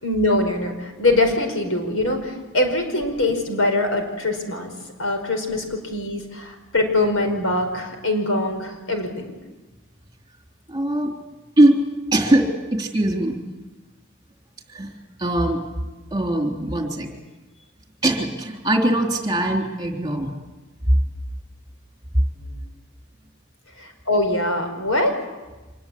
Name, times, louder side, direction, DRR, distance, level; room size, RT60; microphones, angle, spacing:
voice 1, 0.0-4.7 5.0-9.3 22.3-22.6 23.8-25.2, left 2 dB, 85° left, 5 dB, 5.1 m, -23 dB
voice 2, 10.7-11.1 11.6-11.8 12.1-13.4 14.7-14.9 15.2-15.6 16.1-17.1 18.0-20.3 20.9-21.0, right 1 dB, 20° right, 1 dB, 3.5 m, -20 dB
25.5 x 20.5 x 8.7 m, 1.1 s
head